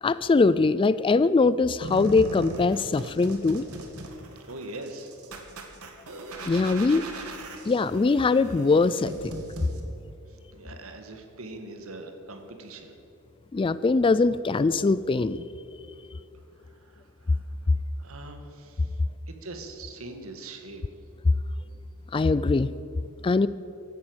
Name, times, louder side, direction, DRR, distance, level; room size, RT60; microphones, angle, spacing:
voice 1, 0.0-3.7 6.5-7.1 7.7-9.4 13.5-15.5 22.1-22.7 23.2-23.5, left 3 dB, 25° left, 16 dB, 0.3 m, -22 dB
sound 1, 1.8-9.8, right 2 dB, 85° right, 2.1 m, -39 dB
voice 2, 4.5-5.1 10.5-12.9 16.8-17.4 18.0-18.9 19.3-20.8, right 2 dB, 65° right, 6 dB, 1.9 m, -42 dB
15.5 x 11.5 x 8.0 m, 2.8 s
head